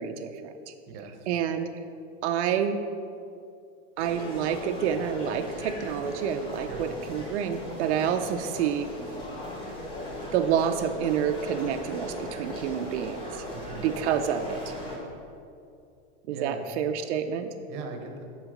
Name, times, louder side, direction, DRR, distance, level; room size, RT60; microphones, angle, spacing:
voice 1, 0.0-0.7 1.3-1.7 2.2-2.8 4.0-8.9 10.3-13.3 13.8-14.7 16.3-17.5, right 8 dB, 80° right, 6 dB, 0.6 m, -28 dB
voice 2, 0.9-1.3 6.6-6.8 13.5-13.9 16.3-16.7 17.7-18.2, right 5 dB, 30° right, 4 dB, 0.8 m, -39 dB
sound 1, 4.0-15.0, equal, 15° left, 1.2 m, -38 dB
7.4 x 6.3 x 4.9 m, 2.5 s
supercardioid pair, 170°, 34 cm